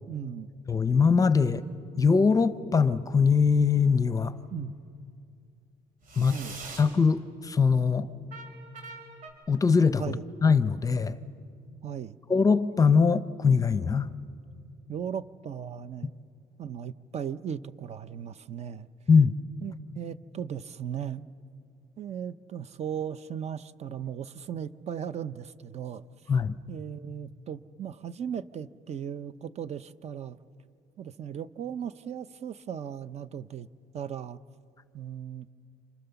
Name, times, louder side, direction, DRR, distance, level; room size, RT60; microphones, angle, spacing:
voice 1, 0.1-0.5 4.5-4.7 6.3-6.6 10.0-10.2 11.8-12.2 14.9-16.2 16.6-18.9 19.6-21.3 22.0-26.1 26.7-30.4 31.0-33.7 33.9-34.4 34.9-35.5, right 8 dB, 45° right, 15 dB, 0.7 m, -37 dB
voice 2, 0.7-1.6 2.0-4.3 6.2-6.4 6.8-8.1 9.5-11.2 12.3-14.1 19.1-19.3 26.3-26.6, left 5 dB, 20° left, 14 dB, 0.7 m, -22 dB
sound 1, 3.7-4.3 6.0-7.0 8.3-9.3, right 4 dB, 65° right, 4.8 m, -44 dB
29.0 x 27.5 x 7.0 m, 2.4 s
cardioid pair, 135°, 16 cm